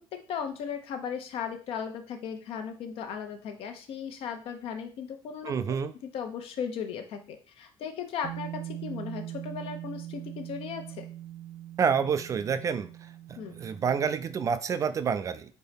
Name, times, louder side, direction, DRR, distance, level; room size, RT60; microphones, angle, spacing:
voice 1, 0.0-5.5 6.0-11.1 13.4-13.6, left 7 dB, 60° left, 6 dB, 1.0 m, -37 dB
voice 2, 5.4-5.9 11.8-12.9 13.3-15.5, right 6 dB, 30° right, 11 dB, 0.4 m, -28 dB
Bass guitar, 8.2-14.5, right 13 dB, 85° right, 1.4 m, -41 dB
4.4 x 4.3 x 5.2 m, 0.39 s
cardioid pair, 160°, 11 cm